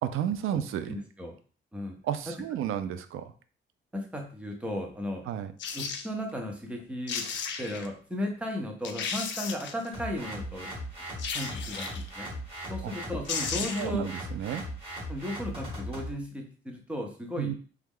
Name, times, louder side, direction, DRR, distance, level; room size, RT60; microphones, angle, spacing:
voice 1, 0.1-1.0 2.0-3.3 5.3-5.5 12.8-12.9 13.8-14.6 17.4-17.5, right 10 dB, 80° right, 11 dB, 0.4 m, -32 dB
voice 2, 0.9-1.3 1.7-2.0 3.9-5.2 5.7-7.2 7.6-10.7 11.3-12.3 12.7-14.1 15.1-17.5, left 1 dB, 5° right, 2 dB, 0.6 m, -35 dB
sound 1, 5.6-6.1 6.8-6.9 7.1-7.9 8.4-8.5 8.8-9.9 11.2-12.1 12.9-13.0 13.2-14.0 14.3-14.4, left 6 dB, 60° left, 0.4 m, -34 dB
sound 2, 9.9-16.1, equal, 25° right, 1.3 m, -38 dB
3.0 x 2.3 x 3.6 m, 0.40 s
wide cardioid pair, 160°, 21 cm